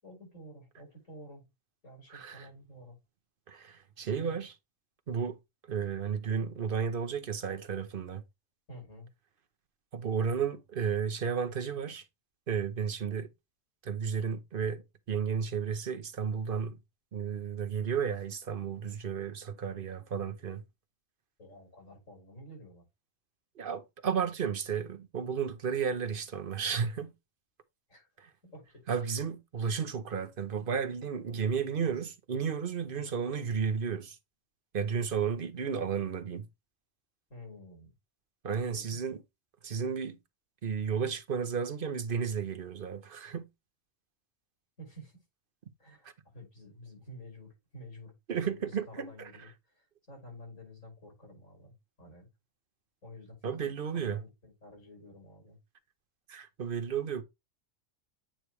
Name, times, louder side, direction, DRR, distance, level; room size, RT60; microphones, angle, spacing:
voice 1, 0.0-1.5 1.8-3.0 4.1-4.4 8.7-9.1 21.4-22.9 27.9-28.1 28.4-28.8 32.9-33.2 37.3-37.9 38.4-39.0 44.8-45.2 45.8-48.1 48.4-52.3 53.0-55.6, equal, 80° left, 6.2 m, -50 dB
voice 2, 2.1-2.5 3.5-4.5 5.1-5.4 5.7-8.2 9.9-12.0 12.5-13.3 13.8-16.8 17.1-20.6 23.6-27.1 28.2-28.3 28.9-34.2 34.7-36.5 38.4-39.2 39.6-40.2 40.6-43.5 48.3-49.3 53.4-54.2 56.3-57.2, right 6 dB, 45° right, 1.0 m, -33 dB
8.9 x 3.2 x 4.7 m
omnidirectional pair, 1.3 m